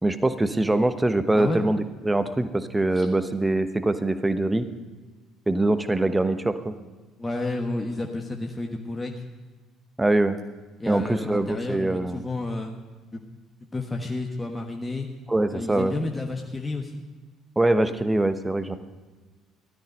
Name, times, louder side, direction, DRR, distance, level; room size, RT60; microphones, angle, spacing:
voice 1, 0.0-4.7 5.5-6.7 10.0-10.4 10.9-12.2 15.3-15.9 17.6-18.8, right 2 dB, 15° right, 11 dB, 1.1 m, -23 dB
voice 2, 7.2-9.1 10.8-12.7 13.1-13.3 13.7-15.1 15.5-17.0, left 2 dB, 15° left, 1 dB, 1.4 m, -31 dB
16.0 x 13.0 x 5.3 m, 1.3 s
figure-of-eight pair, 50°, 0 cm